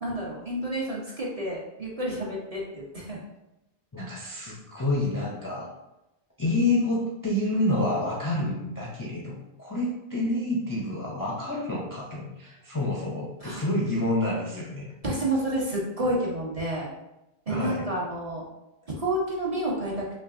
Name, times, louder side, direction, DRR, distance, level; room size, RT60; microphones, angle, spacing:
voice 1, 0.0-3.2 13.4-13.6 15.0-16.9 17.5-18.5 19.0-20.0, right 1 dB, 40° right, -5 dB, 0.9 m, -29 dB
voice 2, 3.9-5.7 6.4-14.9 17.5-17.9, left 2 dB, 25° left, -4 dB, 0.5 m, -28 dB
5.6 x 2.2 x 2.5 m, 0.93 s
omnidirectional pair, 1.1 m